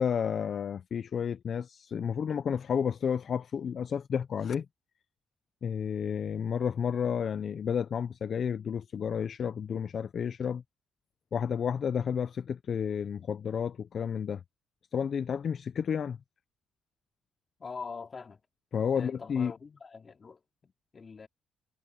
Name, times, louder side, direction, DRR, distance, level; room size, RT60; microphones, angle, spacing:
voice 1, 0.0-4.7 5.6-10.6 11.3-14.4 14.9-16.2 18.7-19.5, left 7 dB, 55° left, 0.7 m, -31 dB
voice 2, 17.6-18.4 18.9-21.3, left 5 dB, 35° left, 3.7 m, -44 dB
cardioid pair, 90°, 0 cm